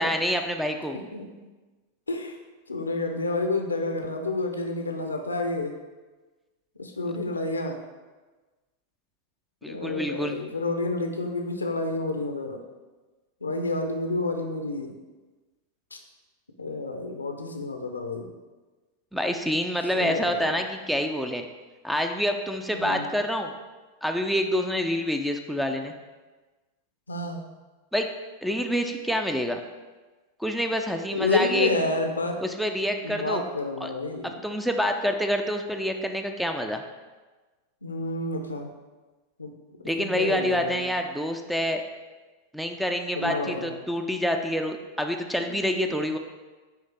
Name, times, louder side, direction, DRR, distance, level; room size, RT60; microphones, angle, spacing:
voice 1, 0.0-1.0 9.6-10.4 19.1-21.5 21.8-23.5 24.0-25.9 27.9-28.1 28.4-29.6 30.4-31.7 32.4-33.4 33.8-33.9 34.2-36.8 39.8-41.8 42.5-46.2, equal, ahead, 5 dB, 0.5 m, -27 dB
voice 2, 1.1-1.4 2.1-2.4 2.7-5.7 6.8-7.8 9.7-12.6 13.4-14.9 15.9-16.0 16.6-18.3 19.9-20.5 22.7-23.1 27.1-27.4 31.1-32.4 33.0-34.3 37.8-38.7 39.4-39.5 40.0-40.8 43.2-43.8 45.4-45.5, left 2 dB, 80° left, 4 dB, 0.7 m, -29 dB
9.4 x 3.2 x 3.4 m, 1.3 s
figure-of-eight pair, 90°, 0 cm